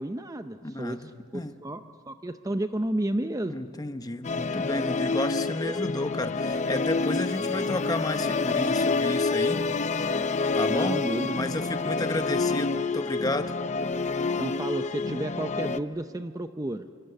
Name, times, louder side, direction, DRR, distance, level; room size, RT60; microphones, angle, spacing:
voice 1, 0.0-3.6 5.6-5.8 7.4-7.8 10.7-11.5 14.4-16.9, right 1 dB, 15° right, 9 dB, 0.5 m, -32 dB
voice 2, 0.6-1.6 3.4-9.6 10.5-13.6, left 1 dB, 20° left, 9 dB, 0.9 m, -32 dB
Musical instrument, 4.2-15.8, left 4 dB, 35° left, 0.6 m, -28 dB
26.5 x 24.0 x 8.0 m, 2.3 s
head